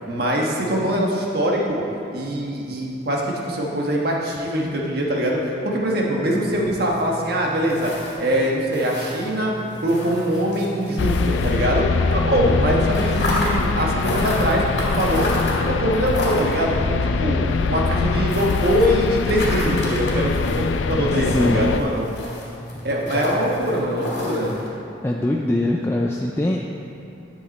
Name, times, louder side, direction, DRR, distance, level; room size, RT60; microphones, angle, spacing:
voice 1, 0.1-1.8 2.1-7.9 8.2-9.5 9.8-15.3 15.6-17.4 17.7-22.0 22.8-24.5, equal, 55° right, -2 dB, 1.3 m, -22 dB
sound 1, 6.1-12.1 12.4-24.7, left 1 dB, 60° left, 2.2 m, -31 dB
sound 2, 11.0-21.8, left 4 dB, 80° left, 0.4 m, -23 dB
voice 2, 21.0-21.6 22.7-23.3 25.0-26.6, left 1 dB, 15° left, -1 dB, 0.4 m, -23 dB
10.5 x 7.1 x 4.2 m, 2.7 s
head